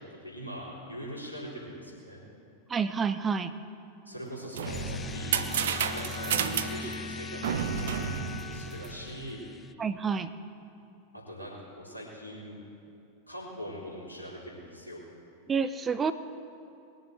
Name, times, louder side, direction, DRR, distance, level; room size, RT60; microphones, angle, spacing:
voice 1, 0.1-2.2 4.1-8.0 8.5-9.4 11.3-12.6 13.3-15.0, equal, 85° left, -6 dB, 4.2 m, -42 dB
voice 2, 2.7-3.5 9.8-10.3 15.5-16.1, right 5 dB, 20° right, 12 dB, 0.6 m, -28 dB
sound 1, 4.2-9.3, right 8 dB, 60° right, 0.8 m, -32 dB
sound 2, 4.6-9.7, left 5 dB, 20° left, 0.3 m, -41 dB
sound 3, 4.9-10.0, left 3 dB, 55° left, 2.5 m, -45 dB
21.5 x 7.4 x 7.8 m, 2.7 s
figure-of-eight pair, 90°, 0 cm